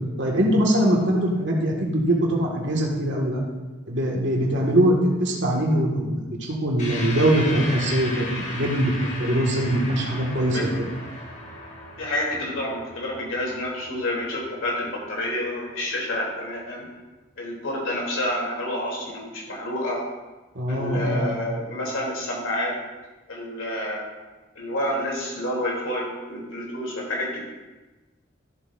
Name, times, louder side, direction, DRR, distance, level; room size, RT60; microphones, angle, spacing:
voice 1, 0.2-3.4 3.9-8.9 9.2-10.7 20.5-21.4, right 1 dB, 65° right, -1 dB, 1.8 m, -22 dB
sound 1, 6.8-15.5, left 2 dB, 35° left, 1.4 m, -36 dB
voice 2, 10.5-10.9 12.0-16.8 17.4-20.0 20.7-22.7 23.3-24.0 24.5-27.5, left 1 dB, 85° left, -3 dB, 3.1 m, -29 dB
13.5 x 7.8 x 2.6 m, 1.2 s
head